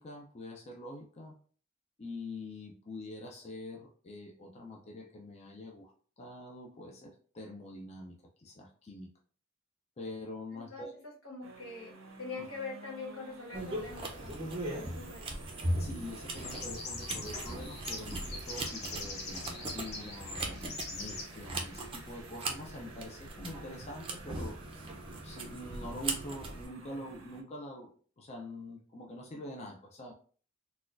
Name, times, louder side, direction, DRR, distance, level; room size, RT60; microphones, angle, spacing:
voice 1, 0.0-1.4 2.0-9.1 10.0-10.9 12.4-12.5 15.8-20.5 20.9-24.6 25.2-30.1, left 1 dB, 30° left, 0 dB, 0.5 m, -45 dB
voice 2, 10.5-14.3 14.7-15.3, left 3 dB, 85° left, -2 dB, 1.4 m, -44 dB
sound 1, 11.4-27.4, right 3 dB, 80° right, 0.8 m, -53 dB
sound 2, 13.5-26.7, right 2 dB, 25° right, 0.5 m, -39 dB
sound 3, 16.3-21.3, left 3 dB, 55° left, 0.9 m, -42 dB
4.1 x 2.3 x 2.5 m, 0.43 s
head